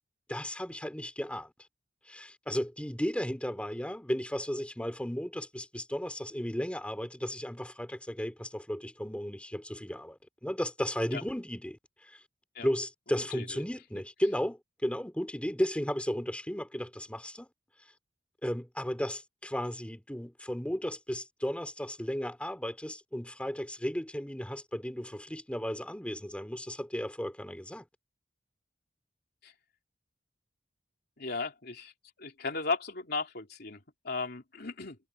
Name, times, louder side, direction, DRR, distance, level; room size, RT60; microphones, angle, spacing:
voice 1, 0.3-1.5 2.1-12.2 12.6-17.5 18.4-27.8, equal, 5° left, 3.2 m, -34 dB
voice 2, 31.2-31.9 32.2-35.0, left 4 dB, 60° left, 3.4 m, -36 dB
head